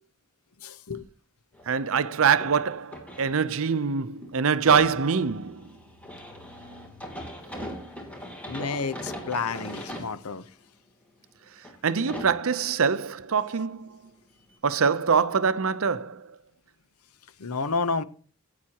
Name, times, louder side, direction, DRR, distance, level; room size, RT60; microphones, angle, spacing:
voice 1, 0.6-1.0 8.5-10.4 17.4-18.0, left 4 dB, 80° left, 0.9 m, -30 dB
sound 1, 1.5-1.8 2.1-3.8 4.2-10.1 10.8-10.9 11.6-11.7 12.0-12.4 14.1-14.2 14.5-14.6, equal, 5° left, 2.9 m, -40 dB
voice 2, 1.7-5.6 11.8-13.9 14.6-16.2, right 6 dB, 65° right, 0.7 m, -24 dB
16.0 x 9.5 x 3.0 m
head